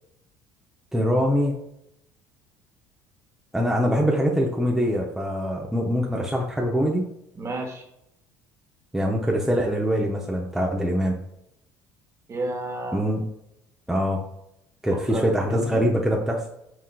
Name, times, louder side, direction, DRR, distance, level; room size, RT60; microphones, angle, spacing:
voice 1, 0.9-1.6 3.5-7.1 8.9-11.1 12.9-13.2 13.9-14.2 14.8-16.5, equal, 5° right, -1 dB, 0.7 m, -23 dB
voice 2, 7.4-7.8 12.3-13.0 14.9-15.8, right 2 dB, 35° right, 2 dB, 1.2 m, -31 dB
5.9 x 3.1 x 2.4 m, 0.79 s
hypercardioid pair, 75°, 9 cm